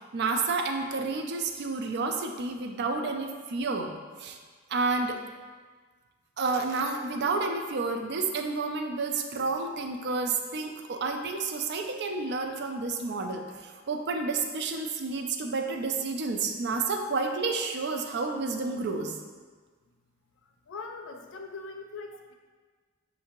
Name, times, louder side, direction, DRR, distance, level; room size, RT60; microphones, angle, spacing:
voice 1, 0.1-4.4 4.7-5.2 6.4-19.2, right 3 dB, 55° right, 5 dB, 0.4 m, -30 dB
voice 2, 20.7-22.3, left 3 dB, 65° left, 4 dB, 0.4 m, -41 dB
6.5 x 2.7 x 2.9 m, 1.5 s
head